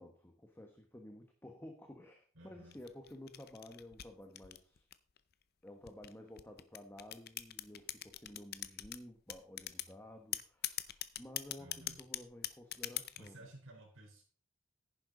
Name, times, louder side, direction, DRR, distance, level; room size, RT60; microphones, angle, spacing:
voice 1, 0.0-4.8 5.6-13.5, left 1 dB, 10° left, 3 dB, 1.2 m, -53 dB
voice 2, 2.3-2.8 11.6-12.0 13.2-14.2, right 1 dB, 75° right, -3 dB, 4.2 m, -55 dB
sound 1, 2.7-5.2 5.9-9.0 9.3-9.9 10.3-13.3, left 13 dB, 50° left, 0.6 m, -41 dB
10.5 x 10.0 x 3.9 m, 0.40 s
head